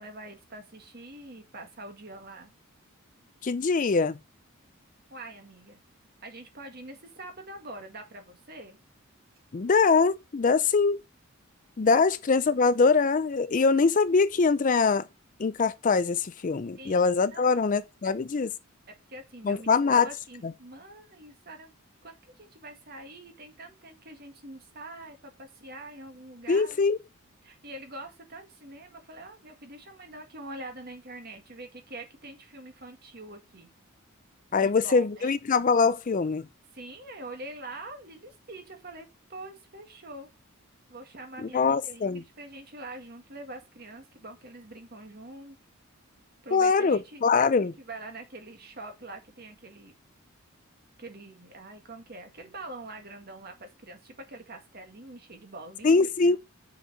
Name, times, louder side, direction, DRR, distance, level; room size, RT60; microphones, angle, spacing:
voice 1, 0.0-2.5 5.1-5.8 6.2-8.8 16.8-17.7 18.0-18.1 18.9-21.7 22.0-26.8 27.4-33.7 34.5-35.4 36.7-40.3 40.9-45.6 46.4-47.2 47.8-49.9 51.0-56.4, right 2 dB, 45° right, 1.8 m, -44 dB
voice 2, 3.4-4.2 9.5-11.0 11.8-15.1 15.4-18.5 19.4-20.1 20.4-20.5 26.5-27.0 34.5-36.5 41.4-42.2 46.5-47.7 55.8-56.4, left 4 dB, 35° left, 0.4 m, -23 dB
6.3 x 4.7 x 6.7 m
head